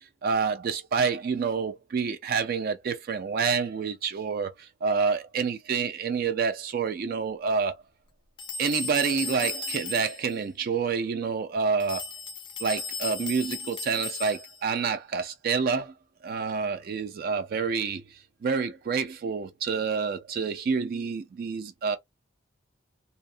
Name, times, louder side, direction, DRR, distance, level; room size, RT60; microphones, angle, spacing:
voice 1, 0.2-7.8 8.6-12.1 12.6-15.9 16.2-22.0, right 5 dB, 50° right, 0.3 m, -28 dB
sound 1, 8.4-10.4 11.8-14.7, left 4 dB, 25° left, 0.4 m, -36 dB
2.7 x 2.0 x 2.6 m
head